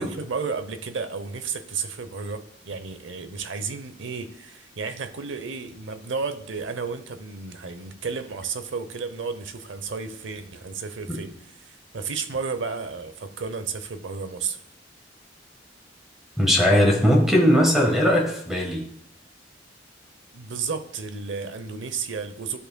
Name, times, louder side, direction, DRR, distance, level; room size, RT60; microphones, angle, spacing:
voice 1, 0.0-11.3 11.6-14.6 20.3-22.6, right 5 dB, 80° right, 10 dB, 0.7 m, -32 dB
voice 2, 16.4-18.9, equal, ahead, 0 dB, 1.3 m, -19 dB
12.5 x 5.4 x 2.2 m, 0.73 s
head